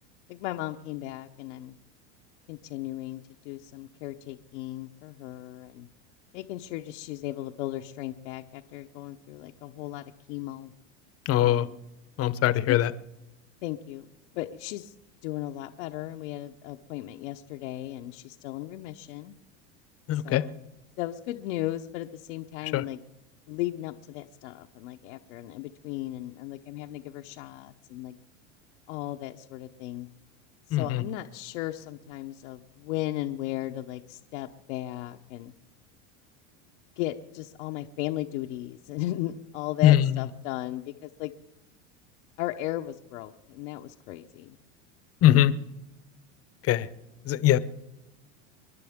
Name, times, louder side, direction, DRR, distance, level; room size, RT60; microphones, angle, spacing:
voice 1, 0.3-1.7 2.5-5.9 6.3-10.7 11.4-11.8 12.6-12.8 13.6-14.1 14.3-14.9 15.2-19.3 20.1-20.6 21.0-23.0 23.5-28.1 28.9-30.1 30.7-35.5 37.0-41.3 42.4-44.6, left 15 dB, 70° left, 3 dB, 0.9 m, -36 dB
voice 2, 11.3-11.7 12.2-12.9 20.1-20.4 22.7-22.8 30.7-31.0 39.8-40.2 45.2-45.5 46.7-46.9 47.3-47.6, left 13 dB, 40° left, 15 dB, 0.9 m, -21 dB
28.0 x 11.5 x 3.6 m, 0.96 s
supercardioid pair, 110°, 37 cm